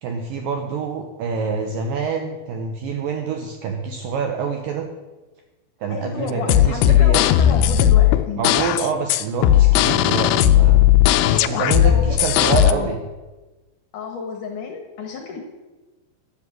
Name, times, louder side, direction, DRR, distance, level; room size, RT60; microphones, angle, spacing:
voice 1, 0.0-4.9 5.8-7.2 8.4-10.8 11.3-13.0, right 5 dB, 75° right, 4 dB, 2.1 m, -26 dB
voice 2, 5.9-8.5 11.2-12.9 13.9-15.4, left 5 dB, 65° left, 3 dB, 2.2 m, -31 dB
sound 1, 6.3-12.7, left 12 dB, 80° left, 2.6 m, -15 dB
12.5 x 7.6 x 7.7 m, 1.2 s
omnidirectional pair, 5.0 m